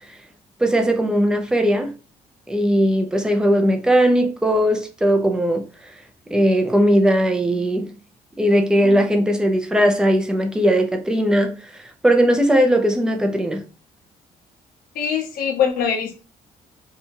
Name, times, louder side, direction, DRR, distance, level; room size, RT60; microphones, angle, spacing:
voice 1, 0.6-1.9 2.5-5.7 6.3-7.9 8.4-13.7, equal, 5° right, 0.4 m, -18 dB
voice 2, 14.9-16.2, left 7 dB, 85° left, 0.9 m, -22 dB
3.3 x 2.8 x 2.8 m
cardioid pair, 175°, 14 cm